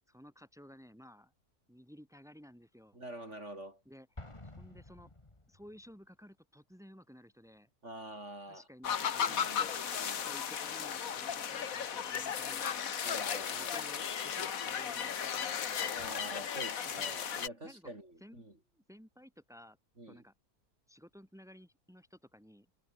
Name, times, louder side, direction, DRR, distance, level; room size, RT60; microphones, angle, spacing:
voice 1, 0.1-1.3 1.7-3.0 3.9-5.1 5.5-7.7 8.4-9.7 10.3-13.0 13.5-16.0 16.8-17.9 18.2-18.4 18.7-19.8 20.1-20.3 20.9-22.7, equal, ahead, 6.8 m, -56 dB
voice 2, 2.9-3.8 7.8-8.7 9.2-10.3 13.0-13.9 15.9-18.5 20.0-20.2, right 1 dB, 50° right, 7.1 m, -47 dB
Explosion, 4.2-5.9, left 2 dB, 20° left, 2.4 m, -51 dB
sound 1, 8.8-17.5, left 8 dB, 65° left, 1.7 m, -35 dB
omnidirectional pair, 1.6 m